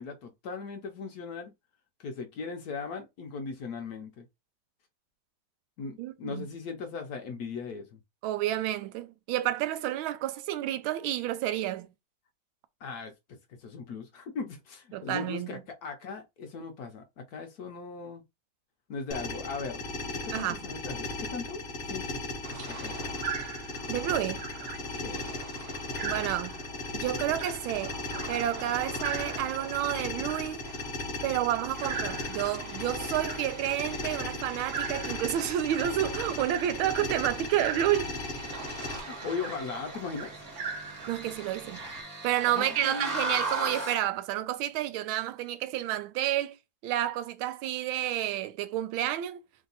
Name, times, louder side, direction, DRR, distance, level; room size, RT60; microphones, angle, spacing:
voice 1, 0.0-1.5 2.0-4.3 5.8-8.0 12.8-13.1 13.5-18.2 18.9-22.2 22.5-23.1 25.0-25.3 39.0-40.3 42.5-43.1, left 5 dB, 70° left, 0.9 m, -38 dB
voice 2, 6.0-6.4 8.2-11.9 14.9-15.6 20.3-20.6 23.9-24.4 26.0-26.6 26.9-28.0 28.3-30.6 31.2-38.1 41.1-41.8 42.2-46.6 46.8-49.4, right 12 dB, 80° right, 1.4 m, -30 dB
sound 1, 19.1-39.0, left 2 dB, 45° left, 0.7 m, -37 dB
sound 2, 22.4-42.0, right 6 dB, 55° right, 1.1 m, -42 dB
sound 3, 31.7-44.1, right 2 dB, 25° right, 1.1 m, -40 dB
3.5 x 2.7 x 3.9 m
omnidirectional pair, 2.3 m